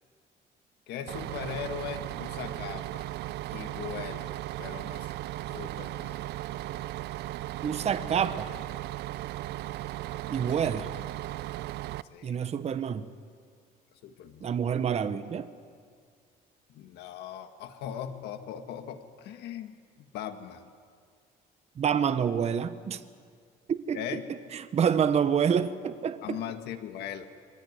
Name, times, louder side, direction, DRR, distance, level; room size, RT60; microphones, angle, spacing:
voice 1, 0.9-3.1 3.5-4.3 4.6-5.1 5.5-6.2 10.6-10.8 12.1-12.4 14.0-14.6 16.7-20.7 23.9-24.3 26.2-27.2, left 9 dB, 80° left, 8 dB, 1.6 m, -39 dB
Bus, 1.1-12.0, right 15 dB, 80° right, 0.6 m, -36 dB
voice 2, 7.6-8.5 10.3-10.9 12.2-13.1 14.4-15.5 21.8-23.0 23.7-24.0 24.5-26.4, right 7 dB, 40° right, 11 dB, 0.9 m, -27 dB
23.5 x 16.5 x 9.5 m, 2.1 s
cardioid pair, 110°, 17 cm